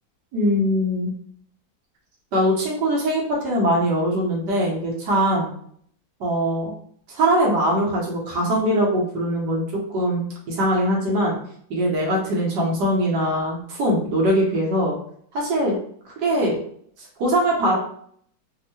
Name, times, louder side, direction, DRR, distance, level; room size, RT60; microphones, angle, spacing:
voice 1, 0.3-1.1 2.3-5.5 6.2-6.7 7.1-11.4 11.7-14.9 15.3-15.8 16.2-16.6 17.0-17.8, equal, 70° right, -3 dB, 1.4 m, -22 dB
3.5 x 2.0 x 2.8 m, 0.62 s
omnidirectional pair, 2.0 m